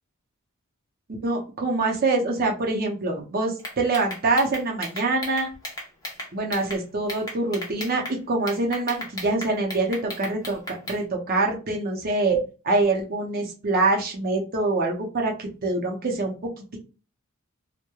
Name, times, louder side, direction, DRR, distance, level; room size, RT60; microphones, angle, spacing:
voice 1, 1.2-5.5 6.3-12.4 12.6-16.8, right 3 dB, 45° right, 1 dB, 0.6 m, -25 dB
sound 1, 3.6-6.8 7.1-8.2 8.5-11.0, left 1 dB, 20° left, 0.8 m, -35 dB
2.9 x 2.1 x 2.2 m, 0.33 s
head